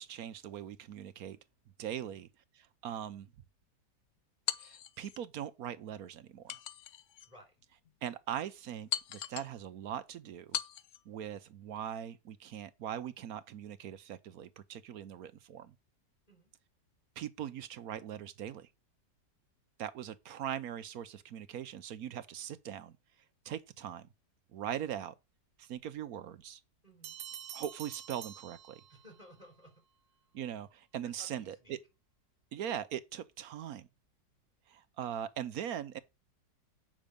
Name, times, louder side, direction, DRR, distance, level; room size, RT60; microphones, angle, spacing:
voice 1, 0.0-1.4 1.8-2.3 2.8-3.3 4.6-6.6 8.0-10.6 11.1-15.7 17.2-18.7 19.8-22.9 23.4-24.1 24.5-25.1 25.6-26.6 27.5-28.8 30.3-31.8 32.5-33.9 34.7-36.0, right 10 dB, 65° right, 1.0 m, -41 dB
sound 1, 4.5-5.2 6.5-7.3 7.8-7.9 8.9-9.6 10.5-11.0, left 10 dB, 65° left, 0.8 m, -39 dB
voice 2, 7.2-7.6 16.3-16.5 26.8-27.2 28.9-29.8 30.2-30.3 31.0-31.8, equal, 20° left, 3.9 m, -58 dB
sound 2, 27.0-29.3, right 10 dB, 90° right, 1.4 m, -47 dB
8.7 x 6.2 x 5.1 m
omnidirectional pair, 1.9 m